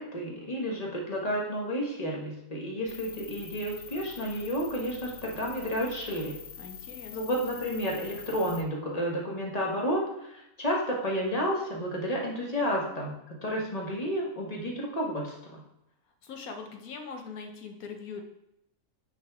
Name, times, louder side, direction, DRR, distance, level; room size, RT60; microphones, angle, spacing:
voice 1, 0.0-6.4 7.1-15.6, equal, 30° left, -2 dB, 1.2 m, -31 dB
sound 1, 2.9-8.6, left 7 dB, 50° left, 0.8 m, -45 dB
voice 2, 6.6-7.3 16.2-18.2, left 5 dB, 85° left, 4 dB, 1.3 m, -42 dB
9.0 x 3.5 x 3.5 m, 0.85 s
omnidirectional pair, 1.5 m